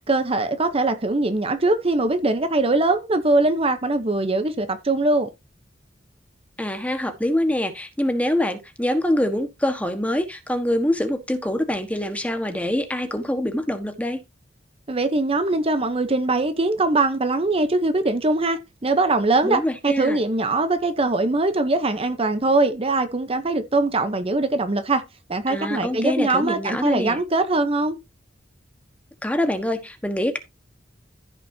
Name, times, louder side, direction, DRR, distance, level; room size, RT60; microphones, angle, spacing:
voice 1, 0.1-5.3 14.9-25.0 25.3-28.0, right 2 dB, 30° right, 0.8 m, -22 dB
voice 2, 6.6-14.2 19.4-20.2 25.5-27.2 29.2-30.4, left 1 dB, 10° left, 1.4 m, -25 dB
14.5 x 6.1 x 2.8 m
head